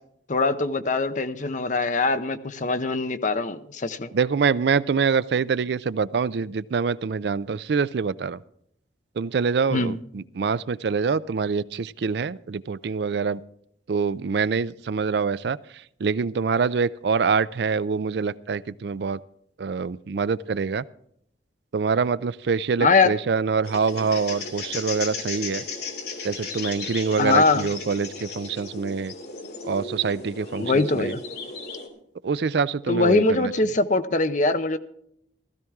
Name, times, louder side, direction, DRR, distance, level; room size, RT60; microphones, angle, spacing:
voice 1, 0.3-4.1 9.7-10.0 22.8-23.1 27.2-27.7 30.6-31.2 32.9-34.8, left 3 dB, 40° left, 10 dB, 0.7 m, -22 dB
voice 2, 4.1-8.4 9.2-13.4 13.9-15.6 16.0-19.2 19.6-20.8 21.7-25.6 26.2-29.1 29.6-31.1 32.2-33.5, right 5 dB, 65° right, 18 dB, 0.4 m, -25 dB
sound 1, 23.6-31.9, left 4 dB, 60° left, 2.9 m, -35 dB
16.0 x 13.5 x 3.6 m, 0.71 s
head